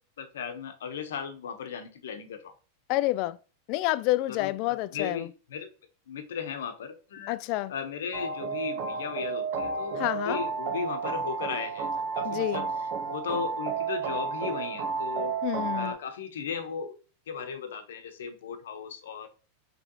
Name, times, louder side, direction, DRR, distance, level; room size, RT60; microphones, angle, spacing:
voice 1, 0.2-2.5 4.3-5.7 6.1-7.3 7.7-11.9 12.1-12.6 13.1-15.3 15.7-17.0 17.3-19.3, left 6 dB, 85° left, 0.8 m, -36 dB
voice 2, 2.9-3.4 3.7-5.3 7.3-7.7 10.0-10.4 12.2-12.7 15.4-16.0, left 17 dB, 50° left, 0.3 m, -28 dB
sound 1, 8.1-15.9, right 5 dB, 55° right, 0.8 m, -32 dB
5.2 x 3.1 x 2.8 m
supercardioid pair, 125°, 0 cm